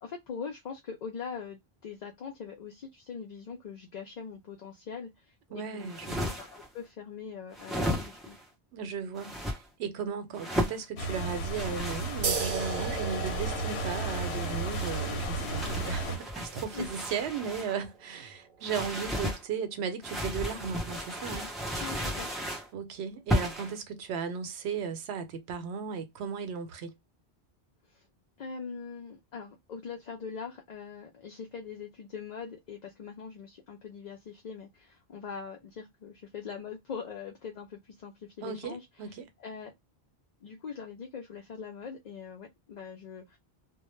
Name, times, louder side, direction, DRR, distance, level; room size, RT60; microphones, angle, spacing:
voice 1, 0.0-5.9 6.2-8.4 16.7-16.9 21.8-22.3 27.9-28.1 28.4-39.1 39.4-39.7 40.4-43.4, left 6 dB, 55° left, 0.5 m, -42 dB
voice 2, 5.5-6.3 8.7-21.5 22.7-26.9 38.4-39.3, right 6 dB, 85° right, 0.8 m, -36 dB
sound 1, 5.8-6.7 7.5-8.4 9.2-9.6 10.3-10.8 11.5-13.0 14.0-17.8 18.6-19.4 20.0-22.7 23.3-23.8, equal, ahead, 0.4 m, -35 dB
sound 2, 11.0-16.2, right 2 dB, 80° left, 0.9 m, -34 dB
sound 3, 12.2-19.4, right 5 dB, 60° right, 0.7 m, -38 dB
2.2 x 2.0 x 3.0 m
omnidirectional pair, 1.1 m